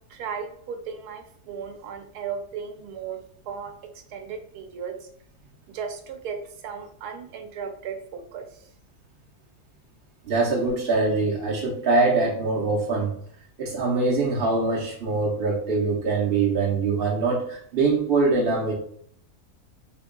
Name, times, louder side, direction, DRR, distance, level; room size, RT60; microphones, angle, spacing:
voice 1, 0.1-5.1 5.7-8.7, right 6 dB, 75° right, 5 dB, 1.1 m, -36 dB
voice 2, 10.2-13.1 13.6-18.7, right 3 dB, 55° right, -3 dB, 0.6 m, -23 dB
2.9 x 2.6 x 3.7 m, 0.64 s
omnidirectional pair, 1.7 m